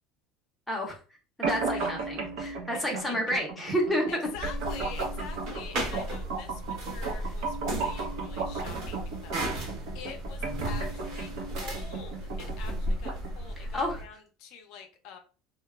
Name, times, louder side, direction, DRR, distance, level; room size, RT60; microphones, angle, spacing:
voice 1, 0.7-1.0 1.4-4.1 13.6-14.0, equal, ahead, -2 dB, 0.6 m, -30 dB
sound 1, 1.4-13.4, right 4 dB, 70° right, 0.7 m, -36 dB
voice 2, 1.7-2.1 2.7-2.8 4.1-15.2, left 6 dB, 60° left, 5 dB, 0.5 m, -46 dB
sound 2, 4.3-14.0, right 1 dB, 55° right, 1.0 m, -35 dB
2.9 x 2.1 x 2.3 m, 0.36 s
cardioid pair, 160°, 0 cm